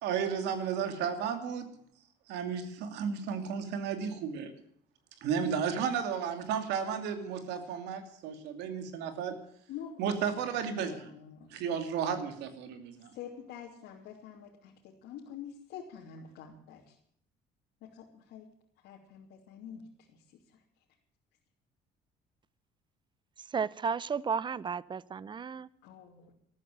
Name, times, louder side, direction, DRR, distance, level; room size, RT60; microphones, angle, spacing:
voice 1, 0.0-1.7 2.3-4.5 5.2-9.4 10.0-11.0 11.5-13.1, right 7 dB, 90° right, 8 dB, 2.6 m, -33 dB
voice 2, 9.7-10.5 10.8-11.6 13.1-16.9 17.8-18.5 18.8-19.8 25.8-26.3, left 8 dB, 85° left, -2 dB, 3.0 m, -47 dB
voice 3, 23.5-25.7, right 6 dB, 25° right, 21 dB, 0.6 m, -33 dB
14.0 x 13.0 x 7.6 m, 0.66 s
cardioid pair, 110°, 17 cm